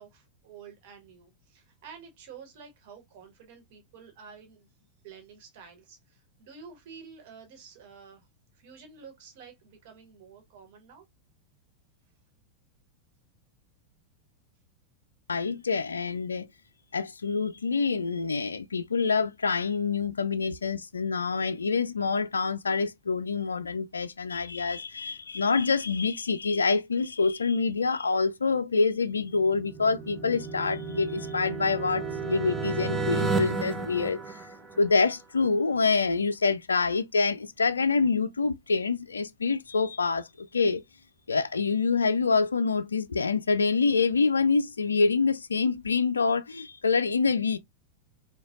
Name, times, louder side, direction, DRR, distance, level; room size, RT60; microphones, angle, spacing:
voice 1, 0.0-4.7 5.0-8.3 8.5-11.1, right 6 dB, 50° right, 1.2 m, -50 dB
voice 2, 15.3-16.5 16.9-34.4 34.8-40.8 41.3-47.6, left 4 dB, 75° left, 0.3 m, -26 dB
sound 1, 29.3-35.1, right 4 dB, 10° right, 0.7 m, -32 dB
4.8 x 2.3 x 2.4 m
figure-of-eight pair, 90°, 0 cm